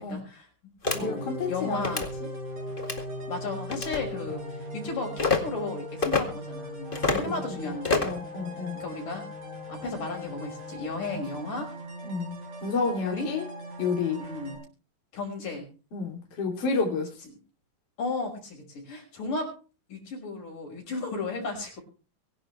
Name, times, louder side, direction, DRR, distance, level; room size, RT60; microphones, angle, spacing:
voice 1, 0.1-0.5 1.0-2.1 3.3-8.1 8.8-9.2 9.7-11.7 13.0-13.3 14.2-14.6 15.1-15.7 18.0-19.5 19.9-21.8, left 3 dB, 75° left, 2 dB, 7.1 m, -34 dB
sound 1, 0.8-1.0 1.8-2.1 2.8-3.0 3.7-4.0 5.2-5.4 6.0-6.2 6.9-7.3 7.8-8.2, left 4 dB, 20° left, 1.5 m, -26 dB
sound 2, 0.8-14.6, equal, 65° right, 7.7 m, -39 dB
voice 2, 0.9-1.8 6.9-7.2 8.0-8.8 12.0-13.5 13.8-14.2 15.9-17.1, left 4 dB, 45° left, 0 dB, 4.1 m, -30 dB
24.0 x 11.0 x 3.3 m, 0.35 s
omnidirectional pair, 3.8 m